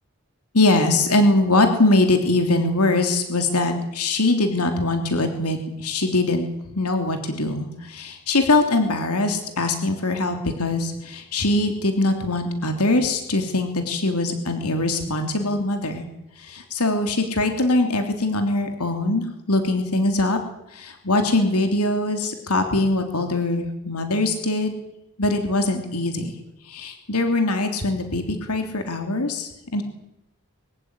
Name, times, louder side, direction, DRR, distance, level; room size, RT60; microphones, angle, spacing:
voice 1, 0.5-6.5 6.7-16.0 16.4-20.4 20.7-24.7 25.2-26.3 26.6-29.8, left 2 dB, 90° left, 6 dB, 3.3 m, -22 dB
24.0 x 15.5 x 10.0 m, 0.89 s
head